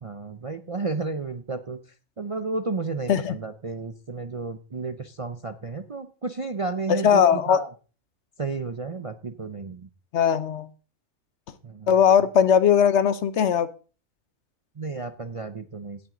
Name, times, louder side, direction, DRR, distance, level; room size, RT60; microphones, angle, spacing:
voice 1, 0.0-1.8 2.2-7.7 8.4-9.9 11.6-11.9 14.8-16.0, right 4 dB, 40° right, 9 dB, 0.5 m, -32 dB
voice 2, 6.9-7.6 10.1-10.7 11.9-13.7, left 8 dB, 60° left, 14 dB, 1.0 m, -19 dB
17.5 x 6.1 x 3.8 m, 0.35 s
omnidirectional pair, 1.4 m